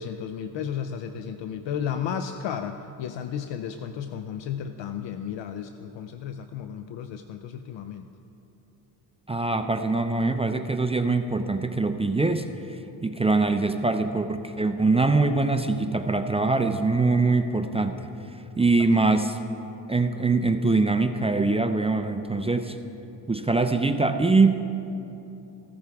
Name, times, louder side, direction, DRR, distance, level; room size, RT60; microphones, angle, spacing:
voice 1, 0.0-8.1, left 8 dB, 80° left, 8 dB, 0.6 m, -33 dB
voice 2, 9.3-18.1 18.6-19.4 19.9-22.8 23.3-24.7, right 3 dB, 15° right, 7 dB, 0.5 m, -23 dB
15.0 x 13.5 x 3.5 m, 2.9 s
cardioid pair, 95°, 43 cm